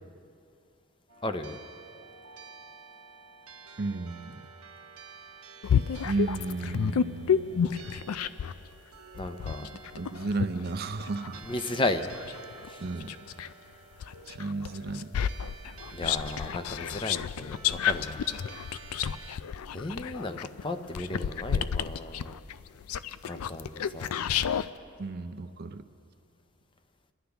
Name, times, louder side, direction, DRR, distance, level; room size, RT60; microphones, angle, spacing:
sound 1, 1.1-19.4, right 4 dB, 70° right, 1.1 m, -50 dB
voice 1, 1.2-1.6 9.2-9.7 11.4-12.1 12.7-12.8 15.9-18.2 19.7-22.4 23.2-24.1, left 2 dB, 25° left, 8 dB, 0.6 m, -34 dB
voice 2, 3.8-4.4 6.0-7.7 9.6-9.7 10.0-11.4 12.8-13.2 14.3-15.1 25.0-25.9, right 3 dB, 45° right, 9 dB, 0.5 m, -33 dB
sound 2, 5.6-8.6 9.2-13.5 14.0-24.7, left 8 dB, 85° left, 0.4 m, -30 dB
28.5 x 11.5 x 3.5 m, 2.6 s
head